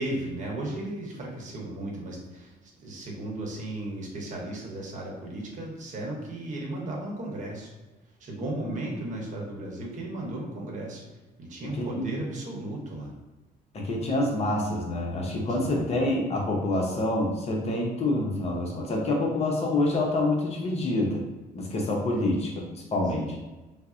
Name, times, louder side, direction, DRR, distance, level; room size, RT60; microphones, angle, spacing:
voice 1, 0.0-7.7 8.2-11.0 11.4-13.1 15.5-15.9 22.2-22.4 23.1-23.3, right 1 dB, 45° right, -1 dB, 0.9 m, -35 dB
voice 2, 11.8-12.1 13.7-21.2 21.5-22.6 22.9-23.3, left 2 dB, 40° left, -1 dB, 0.7 m, -27 dB
4.0 x 2.0 x 2.4 m, 1.2 s
cardioid pair, 110°, 17 cm